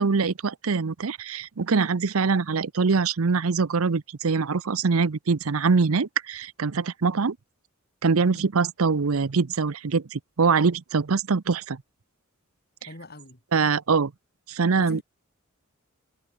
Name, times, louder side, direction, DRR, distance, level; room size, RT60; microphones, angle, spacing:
voice 1, 0.0-7.4 8.0-11.8 13.5-14.1 14.5-15.0, right 4 dB, 75° right, 0.7 m, -23 dB
voice 2, 12.9-13.4 14.8-15.0, left 1 dB, 45° left, 4.4 m, -42 dB
head